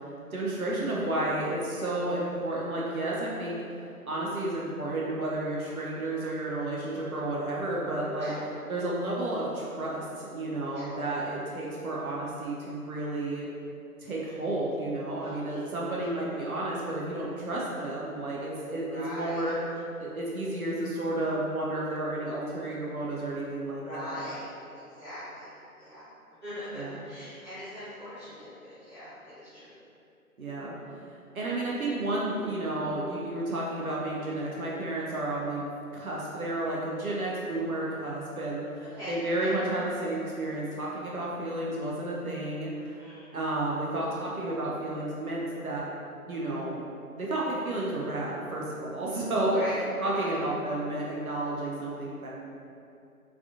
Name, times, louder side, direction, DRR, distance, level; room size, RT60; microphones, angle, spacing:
voice 1, 0.3-3.6 4.1-8.3 8.7-13.5 14.0-19.6 20.0-24.2 26.7-26.9 30.4-30.7 31.3-43.0 43.3-45.9 46.3-46.8 47.2-49.6 50.0-52.3, right 2 dB, 70° right, -5 dB, 0.6 m, -31 dB
voice 2, 15.2-15.6 15.9-16.1 18.9-19.5 23.8-24.4 24.7-25.5 25.8-26.1 26.4-29.7 38.9-39.5 43.0-43.4 49.5-50.4, left 1 dB, 20° right, -17 dB, 0.9 m, -41 dB
3.4 x 2.3 x 2.5 m, 2.6 s
figure-of-eight pair, 155°, 45 cm